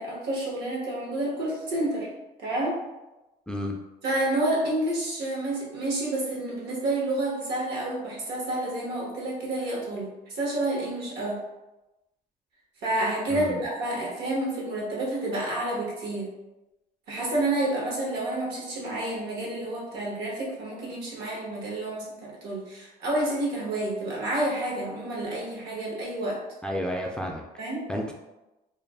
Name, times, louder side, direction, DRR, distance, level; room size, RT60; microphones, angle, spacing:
voice 1, 0.0-2.1 2.4-2.8 4.0-11.4 12.8-16.3 17.1-26.4 27.6-27.9, right 1 dB, 85° right, -3 dB, 1.0 m, -29 dB
voice 2, 3.5-3.8 13.3-13.6 26.6-27.4 27.9-28.1, equal, 5° left, 0 dB, 0.3 m, -31 dB
2.4 x 2.0 x 3.2 m, 1.0 s
cardioid pair, 110°, 17 cm